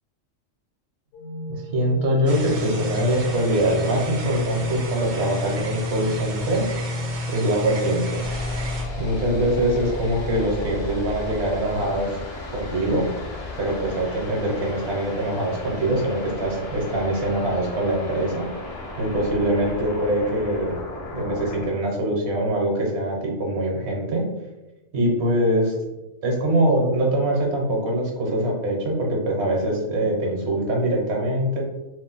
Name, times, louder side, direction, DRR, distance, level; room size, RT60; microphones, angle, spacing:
sound 1, 1.1-7.1, right 1 dB, 65° left, 0.9 m, -37 dB
voice 1, 1.7-6.6 7.3-8.2 9.0-12.2 12.5-13.1 13.6-18.5 19.0-20.7 21.1-24.2 24.9-25.7 26.2-31.6, right 1 dB, 60° right, 0 dB, 1.0 m, -23 dB
sound 2, 2.3-8.8, left 1 dB, 85° right, 0.4 m, -29 dB
sound 3, 8.2-21.7, left 2 dB, 50° left, 0.4 m, -34 dB
2.5 x 2.1 x 3.8 m, 1.0 s
omnidirectional pair, 1.4 m